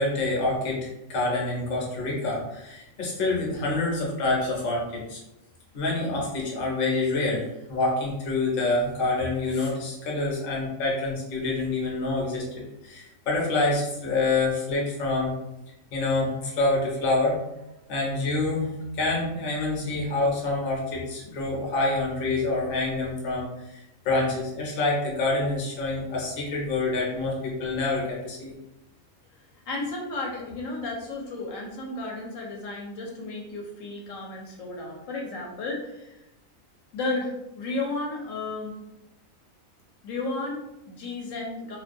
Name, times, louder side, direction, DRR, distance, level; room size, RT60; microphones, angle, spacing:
voice 1, 0.0-5.2 5.7-15.3 15.9-17.4 17.9-28.5, left 2 dB, 50° left, -3 dB, 0.8 m, -27 dB
voice 2, 29.7-36.2 36.9-38.7 40.0-41.8, left 2 dB, 75° left, -1 dB, 0.9 m, -33 dB
2.4 x 2.2 x 2.5 m, 0.89 s
omnidirectional pair, 1.4 m